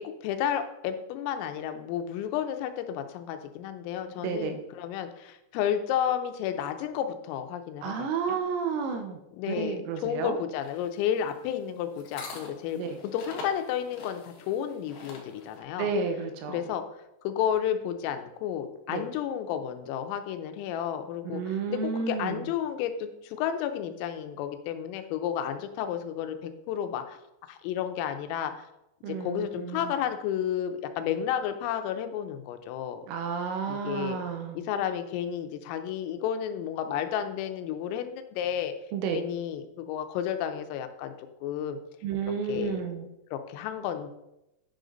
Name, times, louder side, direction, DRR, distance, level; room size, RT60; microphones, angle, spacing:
voice 1, 0.0-7.9 8.3-8.4 9.4-15.9 16.5-16.8 17.2-27.2 27.5-28.7 29.2-33.1 33.7-34.2 34.6-38.7 39.1-41.1 41.4-41.8 42.5-42.8 43.3-44.1, left 9 dB, 85° left, 8 dB, 3.4 m, -32 dB
voice 2, 4.2-4.6 7.8-9.2 9.5-10.4 12.8-13.0 15.8-16.6 18.9-19.1 21.3-22.5 29.0-29.9 33.1-34.6 38.9-39.3 42.0-43.1, right 5 dB, 90° right, 7 dB, 3.6 m, -31 dB
sound 1, 10.6-15.6, left 3 dB, 60° left, 2.7 m, -45 dB
9.8 x 6.4 x 3.9 m, 0.88 s
omnidirectional pair, 5.8 m